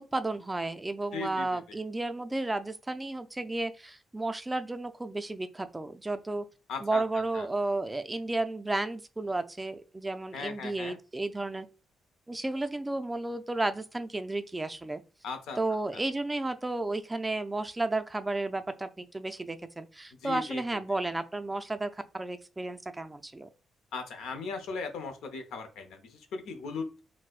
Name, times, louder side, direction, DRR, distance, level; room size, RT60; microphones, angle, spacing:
voice 1, 0.0-6.5 6.8-11.7 12.3-15.0 15.6-23.5, right 2 dB, 15° right, 0.3 m, -33 dB
voice 2, 1.1-1.6 6.7-7.5 10.3-11.0 15.2-15.6 15.9-16.0 20.2-20.6 23.9-27.0, left 4 dB, 85° left, 0.6 m, -38 dB
4.2 x 2.0 x 2.3 m
cardioid pair, 95°, 0 cm